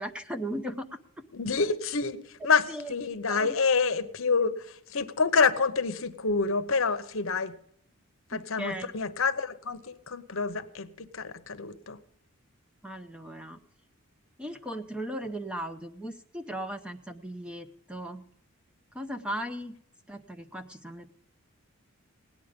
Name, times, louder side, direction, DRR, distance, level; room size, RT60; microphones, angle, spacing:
voice 1, 0.0-1.2 2.7-2.9 3.3-3.6 8.3-9.0 12.8-13.6 14.4-18.3 18.9-19.8 20.1-21.1, right 1 dB, 5° right, 7 dB, 0.7 m, -37 dB
voice 2, 1.3-7.5 8.3-12.0, left 4 dB, 65° left, 11 dB, 0.9 m, -28 dB
17.5 x 10.0 x 5.2 m, 0.69 s
head